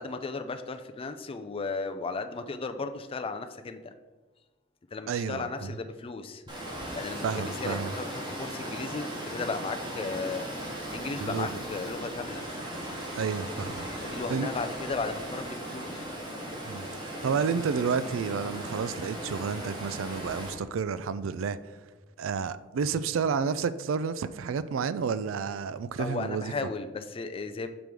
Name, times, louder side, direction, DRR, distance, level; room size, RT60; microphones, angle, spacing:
voice 1, 0.0-3.9 4.9-6.4 6.9-10.5 10.9-12.4 14.0-16.1 26.0-27.7, left 3 dB, 30° left, 0.4 m, -35 dB
voice 2, 5.1-5.7 7.2-7.9 11.2-11.6 13.1-14.5 16.6-21.6 22.2-26.5, right 6 dB, 80° right, 0.4 m, -31 dB
Water, 6.5-20.5, equal, 25° right, 1.7 m, -37 dB
6.0 x 5.2 x 4.7 m
head